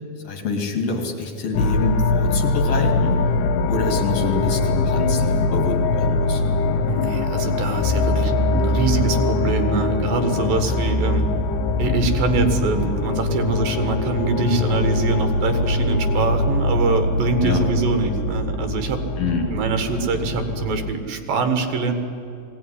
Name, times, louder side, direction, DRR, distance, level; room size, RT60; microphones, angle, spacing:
voice 1, 0.2-3.2 3.6-6.4 10.7-10.8 17.4-17.6 19.2-19.5, left 4 dB, 50° left, 3 dB, 3.0 m, -26 dB
sound 1, 1.5-20.9, left 3 dB, 75° left, 2.4 m, -22 dB
voice 2, 6.9-11.3 11.8-19.0 19.5-21.9, right 4 dB, 80° right, 7 dB, 3.4 m, -24 dB
20.0 x 17.0 x 10.0 m, 2.6 s
omnidirectional pair, 4.0 m